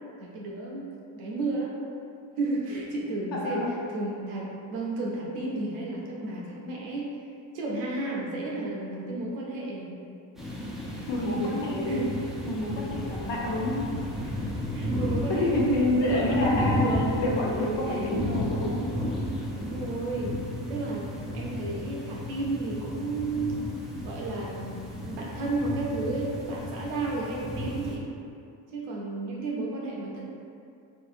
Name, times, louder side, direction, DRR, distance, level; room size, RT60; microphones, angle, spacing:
voice 1, 0.2-0.9 1.1-1.7 2.4-7.1 7.5-9.9 11.2-12.2 14.7-18.1 19.6-20.3 20.7-23.6 24.0-28.1 28.7-30.2, right 2 dB, 90° right, -3 dB, 0.7 m, -32 dB
voice 2, 3.3-3.7 11.1-12.0 12.4-13.8 15.3-16.8 17.2-18.8, left 2 dB, 60° left, -3 dB, 0.8 m, -28 dB
sound 1, 10.4-28.0, equal, ahead, 0.4 m, -33 dB
sound 2, 12.6-20.0, equal, 90° left, 1.1 m, -41 dB
2.9 x 2.7 x 2.5 m, 2.5 s
supercardioid pair, 75°, 49 cm